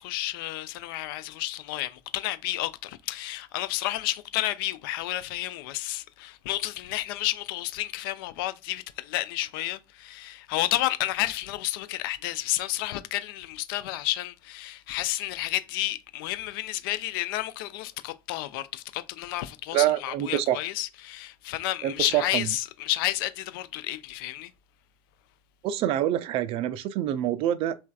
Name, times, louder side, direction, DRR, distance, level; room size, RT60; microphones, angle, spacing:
voice 1, 0.0-24.5, left 15 dB, 60° left, 0.4 m, -31 dB
voice 2, 19.7-20.6 21.8-22.5 25.6-27.8, right 12 dB, 45° right, 0.4 m, -26 dB
3.3 x 3.0 x 2.3 m
figure-of-eight pair, 70°, 13 cm